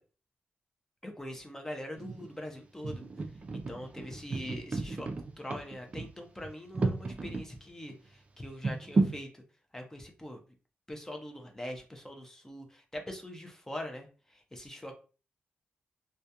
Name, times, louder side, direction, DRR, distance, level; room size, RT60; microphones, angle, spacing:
voice 1, 1.0-3.1 3.7-5.1 5.4-9.4 9.7-10.4 10.9-14.9, left 1 dB, 10° left, 3 dB, 0.5 m, -43 dB
sound 1, 2.0-2.4 2.8-7.4 7.9-8.0 8.6-9.2, right 3 dB, 35° right, 0.4 m, -33 dB
2.3 x 2.2 x 2.7 m, 0.35 s
cardioid pair, 110°, 4 cm